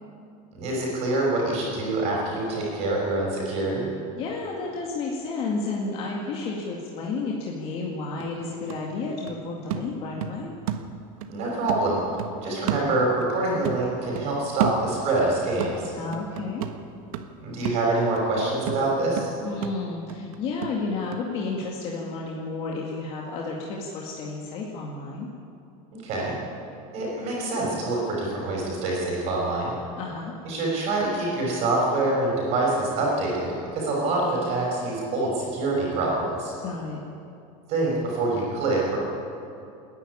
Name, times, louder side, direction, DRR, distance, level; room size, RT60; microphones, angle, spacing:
voice 1, 0.5-3.9 11.3-12.0 12.4-15.9 17.4-19.3 25.9-26.3 26.9-29.7 30.4-36.5 37.7-39.0, right 2 dB, 35° right, -3 dB, 6.2 m, -25 dB
voice 2, 4.2-10.5 16.0-16.6 19.4-25.3 30.0-30.3 36.6-37.0, left 3 dB, 30° left, -2 dB, 2.1 m, -31 dB
sound 1, 7.7-7.8 8.2-11.4 11.7-13.4 13.6-15.3 15.6-21.3 21.6-21.7, right 9 dB, 75° right, 1.4 m, -33 dB
27.5 x 10.5 x 9.8 m, 2.6 s
supercardioid pair, 175°, 18 cm